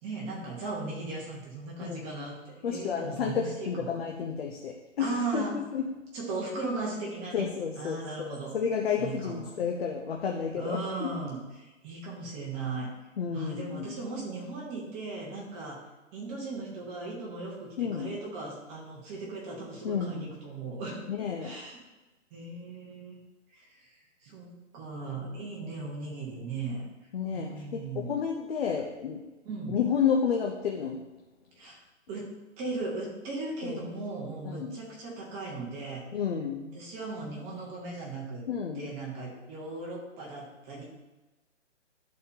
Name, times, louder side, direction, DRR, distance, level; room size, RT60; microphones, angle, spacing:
voice 1, 0.0-2.4 2.7-3.9 5.0-5.6 6.1-7.5 7.8-8.6 9.0-9.5 10.5-12.9 13.3-15.8 16.1-21.1 21.4-21.8 22.3-23.2 23.5-23.8 24.2-24.5 24.7-26.8 27.3-28.1 29.4-29.8 31.6-31.8 32.1-36.0 36.7-38.4 38.7-40.8, right 3 dB, 15° right, -3 dB, 1.2 m, -37 dB
voice 2, 1.8-2.1 2.6-5.9 7.3-11.1 13.2-13.9 17.8-18.1 19.8-20.3 21.1-21.5 27.1-29.2 29.7-31.0 33.6-33.8 34.4-34.8 36.1-36.8 38.5-38.9, left 7 dB, 50° left, 1 dB, 0.8 m, -31 dB
12.0 x 4.3 x 2.8 m, 1.1 s
hypercardioid pair, 155°, 37 cm